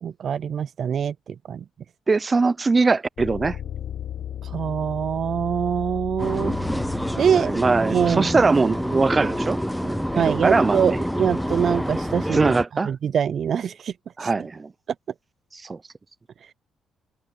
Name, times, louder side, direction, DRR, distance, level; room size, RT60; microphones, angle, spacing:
voice 1, 0.0-1.6 4.4-6.6 7.2-7.5 7.9-8.3 10.2-12.5 12.9-13.9 14.2-14.3, right 8 dB, 55° right, 0.5 m, -24 dB
voice 2, 2.1-3.6 7.3-11.0 12.3-12.9 14.2-14.7 15.5-15.8, right 4 dB, 30° right, 0.8 m, -22 dB
sound 1, 3.2-12.1, left 10 dB, 60° left, 1.1 m, -37 dB
sound 2, 6.2-12.6, equal, ahead, 0.7 m, -27 dB
open air
cardioid pair, 90°, 0 cm